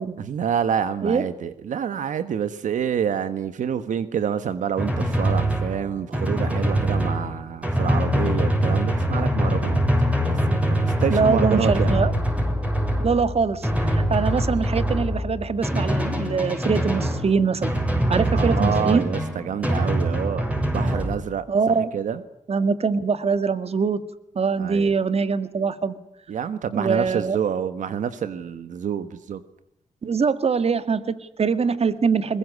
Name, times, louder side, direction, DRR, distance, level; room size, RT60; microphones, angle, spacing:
voice 1, 0.2-9.8 10.2-12.0 18.3-20.5 20.7-22.2 24.6-24.9 26.3-29.4, right 8 dB, 85° right, 12 dB, 1.4 m, -27 dB
Drum, 4.8-21.1, equal, 10° right, 6.9 m, -23 dB
voice 2, 11.1-12.1 13.0-17.7 18.1-19.0 21.5-21.9 22.5-24.0 24.4-26.0 26.8-27.4 30.0-32.4, right 5 dB, 55° right, 13 dB, 1.8 m, -23 dB
22.0 x 21.5 x 9.7 m, 0.78 s
cardioid pair, 75°, 13 cm